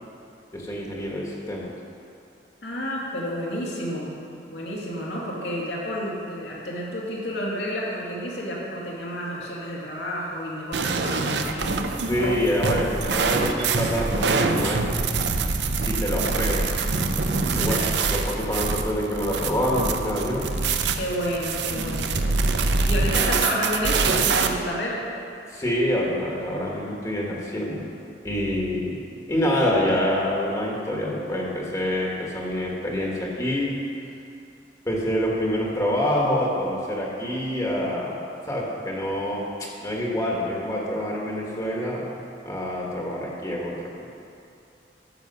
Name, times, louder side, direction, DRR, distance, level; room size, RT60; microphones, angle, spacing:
voice 1, 0.5-1.7 12.1-14.9 15.8-16.7 17.6-20.4 25.5-27.8 28.2-29.0 29.3-33.7 34.8-39.5 39.8-42.1 42.4-43.9, equal, 20° left, -3 dB, 1.4 m, -26 dB
voice 2, 2.6-4.1 4.5-11.7 16.0-16.4 17.6-17.9 21.0-22.2 22.8-25.0, equal, 80° left, -4 dB, 2.4 m, -30 dB
sound 1, 10.7-24.5, right 4 dB, 75° right, 0.7 m, -25 dB
13.5 x 6.8 x 5.4 m, 2.6 s
head